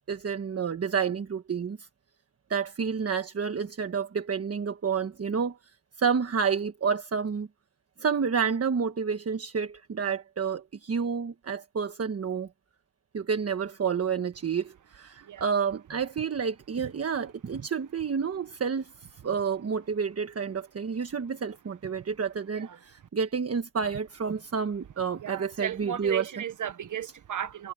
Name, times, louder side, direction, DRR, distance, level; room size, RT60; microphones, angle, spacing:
voice 1, 0.1-1.9 2.5-5.6 6.0-7.5 8.0-12.5 13.1-18.9 19.2-26.2, right 6 dB, 55° right, 1.2 m, -29 dB
voice 2, 25.2-27.7, right 9 dB, 85° right, 1.1 m, -35 dB
wide cardioid pair, 95°, 30 cm